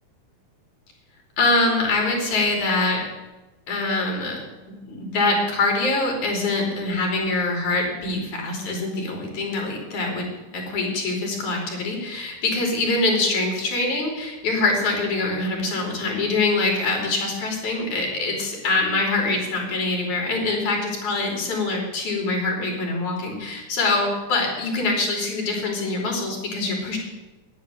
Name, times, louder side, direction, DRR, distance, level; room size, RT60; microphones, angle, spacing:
voice 1, 1.4-3.1 3.7-4.4 4.7-27.0, left 2 dB, 70° left, 0 dB, 4.7 m, -24 dB
10.5 x 10.5 x 9.4 m, 1.1 s
omnidirectional pair, 3.6 m